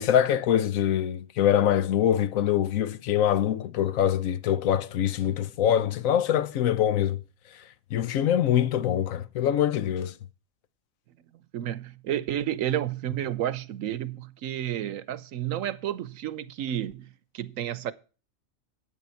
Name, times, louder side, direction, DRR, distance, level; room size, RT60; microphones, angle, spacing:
voice 1, 0.0-7.2 7.9-10.1, left 10 dB, 85° left, 1.1 m, -24 dB
voice 2, 11.5-17.9, right 11 dB, 80° right, 1.1 m, -31 dB
9.6 x 8.9 x 4.5 m
omnidirectional pair, 1.4 m